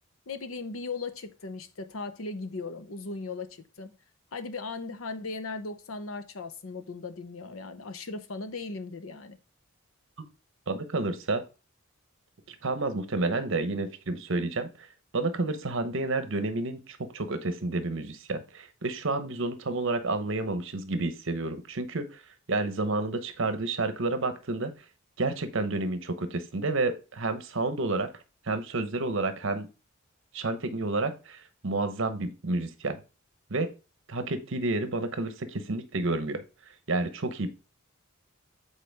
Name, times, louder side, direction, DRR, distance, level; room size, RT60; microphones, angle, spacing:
voice 1, 0.3-3.5 3.8-3.9 4.3-9.4, left 3 dB, 75° left, 0.8 m, -37 dB
voice 2, 10.7-11.4 12.5-14.7 15.1-22.2 22.5-24.7 25.2-28.1 28.5-29.7 30.3-33.0 33.5-33.7 34.1-36.4 36.9-37.5, right 2 dB, 65° right, 0.9 m, -30 dB
7.7 x 4.2 x 3.4 m
head